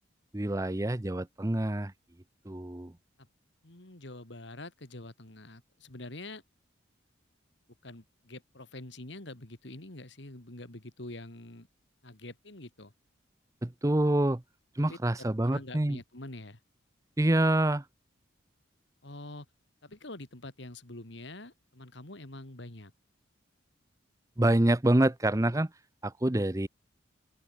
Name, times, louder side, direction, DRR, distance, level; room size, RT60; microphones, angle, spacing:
voice 1, 0.3-1.9 2.5-2.9 13.6-14.4 14.8-16.0 17.2-17.8 24.4-25.7 26.0-26.7, right 1 dB, 15° right, 0.6 m, -26 dB
voice 2, 3.6-6.4 7.8-11.7 12.0-12.9 14.9-16.6 19.0-19.5 19.8-22.9, left 2 dB, 65° left, 2.6 m, -45 dB
open air
head